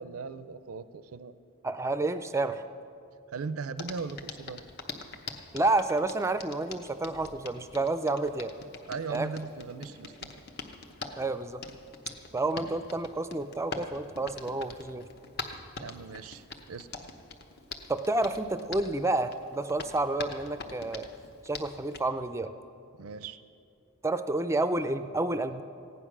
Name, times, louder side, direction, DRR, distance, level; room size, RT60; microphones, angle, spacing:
voice 1, 0.0-1.3 3.3-4.6 8.9-10.3 15.8-16.9 23.0-23.4, right 5 dB, 90° right, 13 dB, 0.5 m, -38 dB
voice 2, 1.6-2.6 5.5-8.5 9.1-9.3 11.2-11.6 12.3-15.1 17.9-21.1 21.4-22.5 24.0-25.6, right 2 dB, 15° right, 11 dB, 0.4 m, -29 dB
Hands, 3.8-22.1, left 3 dB, 50° left, 0.9 m, -44 dB
15.5 x 10.0 x 6.1 m, 2.7 s
head